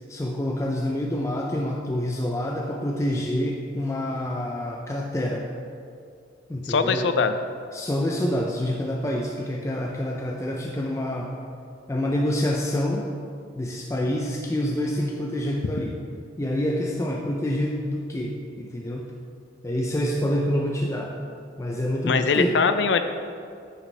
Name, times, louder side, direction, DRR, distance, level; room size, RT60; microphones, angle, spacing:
voice 1, 0.1-5.5 6.5-7.1 7.7-11.3 11.9-13.1 13.6-15.9 16.4-19.1 19.6-21.1 21.6-22.6, left 1 dB, 15° left, 0 dB, 0.4 m, -27 dB
voice 2, 6.6-7.3 22.1-23.0, left 5 dB, 75° left, 9 dB, 0.5 m, -22 dB
9.2 x 6.2 x 3.3 m, 2.3 s
head